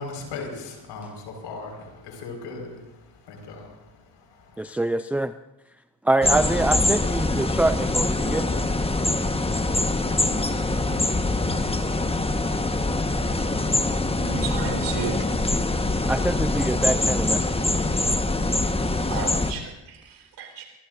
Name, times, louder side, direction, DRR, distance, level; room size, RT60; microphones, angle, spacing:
voice 1, 0.0-4.7, left 3 dB, 80° left, 2 dB, 5.2 m, -38 dB
voice 2, 4.6-5.3 6.0-8.5 16.1-17.5, right 2 dB, 5° right, 12 dB, 0.5 m, -24 dB
sound 1, 6.2-19.5, left 2 dB, 15° left, 1.3 m, -24 dB
voice 3, 14.2-15.2 16.7-17.0 17.7-17.9 19.1-20.7, right 6 dB, 70° right, 3 dB, 4.1 m, -33 dB
23.0 x 23.0 x 2.6 m, 0.99 s
supercardioid pair, 55°, 43 cm